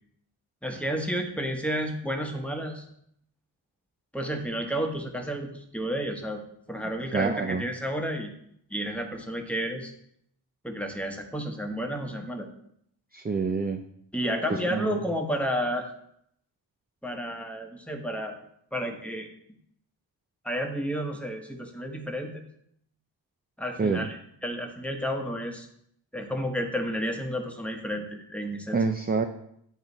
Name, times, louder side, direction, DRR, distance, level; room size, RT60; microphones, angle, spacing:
voice 1, 0.6-2.8 4.1-6.4 6.7-8.3 8.7-9.9 10.6-12.5 14.1-15.9 17.0-18.4 18.7-19.3 20.4-22.4 23.6-25.7 26.1-28.8, equal, 5° left, 3 dB, 1.1 m, -31 dB
voice 2, 7.1-7.6 13.1-13.8 14.5-15.0 23.8-24.1 28.7-29.2, right 4 dB, 20° right, 5 dB, 0.4 m, -27 dB
8.8 x 3.9 x 4.1 m, 0.71 s
cardioid pair, 70°, 45 cm